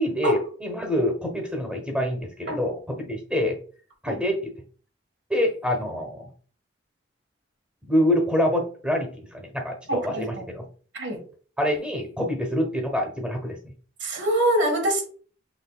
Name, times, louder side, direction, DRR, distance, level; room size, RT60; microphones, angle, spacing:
voice 1, 0.0-3.6 4.0-4.5 5.3-6.3 7.8-10.6 11.6-13.6, equal, 5° right, 1.0 m, -26 dB
voice 2, 9.9-10.4 10.9-11.2 14.0-15.1, right 1 dB, 70° right, 1.3 m, -24 dB
6.1 x 3.1 x 2.3 m
head